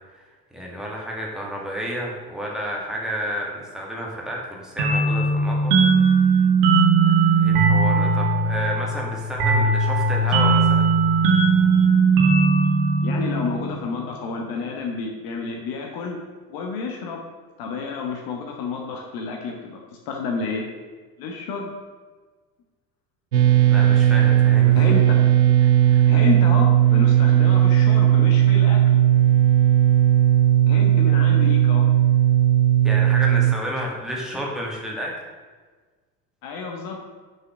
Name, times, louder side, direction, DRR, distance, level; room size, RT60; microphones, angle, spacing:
voice 1, 0.5-6.4 7.0-10.9 23.7-24.9 25.6-26.1 32.8-35.1, equal, ahead, -3 dB, 2.0 m, -31 dB
sound 1, 4.8-14.1, right 4 dB, 50° right, 1.8 m, -19 dB
voice 2, 13.0-16.2 16.5-17.2 17.6-19.8 20.1-20.7 21.2-21.7 24.7-25.2 26.1-29.0 30.7-31.8 36.4-37.0, left 4 dB, 45° left, 1 dB, 1.3 m, -29 dB
sound 2, 23.3-33.5, right 12 dB, 80° right, 0.6 m, -16 dB
6.3 x 6.1 x 6.0 m, 1.4 s
figure-of-eight pair, 65°, 49 cm